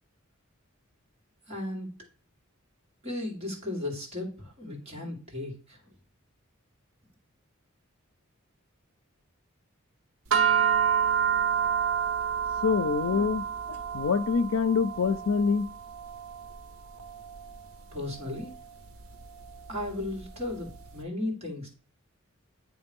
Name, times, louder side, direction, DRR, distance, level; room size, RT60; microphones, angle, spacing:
voice 1, 1.5-1.9 3.0-5.8 17.9-18.5 19.7-21.7, left 1 dB, 30° right, 2.2 m, -35 dB
sound 1, 10.3-20.8, right 8 dB, 75° right, 0.7 m, -30 dB
voice 2, 12.6-15.7, left 5 dB, 75° left, 0.4 m, -26 dB
9.0 x 3.1 x 5.3 m
head